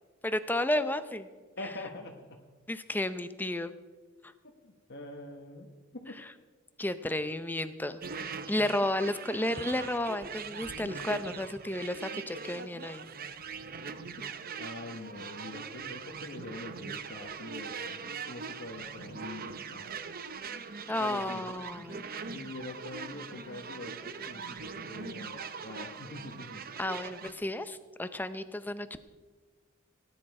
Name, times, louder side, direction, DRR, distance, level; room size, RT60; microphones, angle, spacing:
voice 1, 0.2-1.3 2.7-3.7 6.8-8.0 8.5-13.1 20.9-22.1 26.8-29.0, left 1 dB, 10° left, 11 dB, 0.6 m, -32 dB
voice 2, 1.6-2.4 4.4-5.7 6.1-6.2 14.6-20.0 21.0-21.6 22.2-26.7, left 2 dB, 50° left, 1 dB, 1.2 m, -44 dB
sound 1, 8.0-27.3, right 5 dB, 45° right, 0.7 m, -41 dB
17.0 x 10.5 x 4.8 m, 1.4 s
head